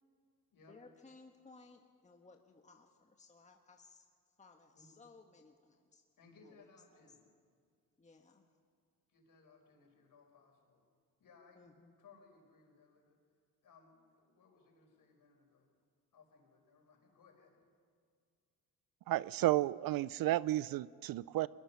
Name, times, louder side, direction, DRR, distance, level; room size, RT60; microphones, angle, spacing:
voice 1, 0.7-6.0 6.4-6.7 8.0-8.4 11.5-11.9, left 3 dB, 20° left, 3 dB, 1.4 m, -60 dB
voice 2, 6.2-7.2 9.1-10.8 11.2-13.2 13.6-15.7 16.1-17.7, left 4 dB, 55° left, 2 dB, 5.3 m, -64 dB
voice 3, 19.1-21.5, right 15 dB, 60° right, 20 dB, 0.5 m, -32 dB
23.0 x 21.0 x 5.7 m, 2.1 s
cardioid pair, 90°, 39 cm